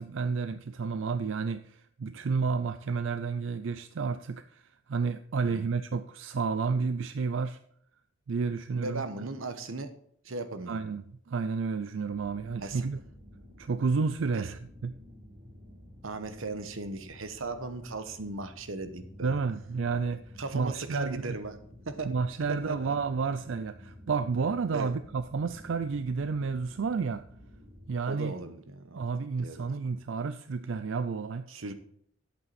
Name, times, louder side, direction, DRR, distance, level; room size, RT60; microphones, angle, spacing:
voice 1, 0.0-7.6 8.3-9.0 10.7-13.0 13.6-14.9 19.2-20.2 20.5-21.4 22.0-27.2 27.9-28.3 28.9-31.5, right 5 dB, 65° right, 11 dB, 0.4 m, -31 dB
voice 2, 8.8-9.9 10.2-10.8 12.6-12.8 14.3-14.5 16.0-19.4 20.4-21.6 21.9-22.1 22.5-23.0 24.7-24.9 28.1-29.1 29.4-29.7 31.5-31.7, right 3 dB, 90° right, 10 dB, 1.1 m, -37 dB
sound 1, 12.1-27.9, left 1 dB, 50° right, 4.4 m, -52 dB
11.0 x 8.4 x 4.2 m, 0.65 s
head